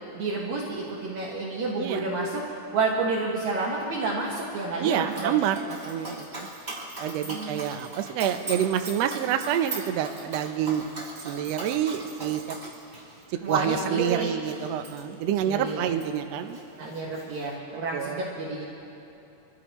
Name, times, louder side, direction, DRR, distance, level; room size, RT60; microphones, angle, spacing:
voice 1, 0.2-2.4 2.7-5.3 7.2-7.6 13.4-14.3 15.5-15.9 16.8-18.6, right 3 dB, 60° right, -4 dB, 2.7 m, -29 dB
voice 2, 4.8-6.5 7.0-10.9 11.2-12.6 13.3-16.6 17.9-18.2, right 10 dB, 80° right, 7 dB, 1.5 m, -28 dB
Dog, 5.1-16.2 16.5-17.5, right 2 dB, 15° right, 3.2 m, -40 dB
27.5 x 16.0 x 3.1 m, 3.0 s
omnidirectional pair, 3.8 m